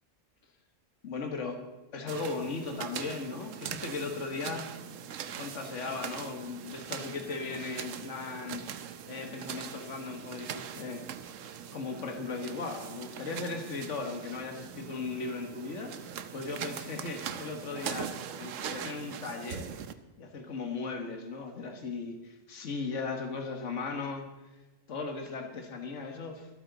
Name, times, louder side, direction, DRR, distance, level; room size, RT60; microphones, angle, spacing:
voice 1, 1.0-1.6 1.9-4.7 5.3-8.6 9.1-11.0 11.7-18.1 18.4-19.7 20.2-24.3 24.9-26.5, left 4 dB, 70° left, 4 dB, 1.8 m, -37 dB
sound 1, 2.1-19.9, right 8 dB, 85° right, 1.1 m, -41 dB
24.5 x 8.8 x 4.0 m, 1.1 s
omnidirectional pair, 1.3 m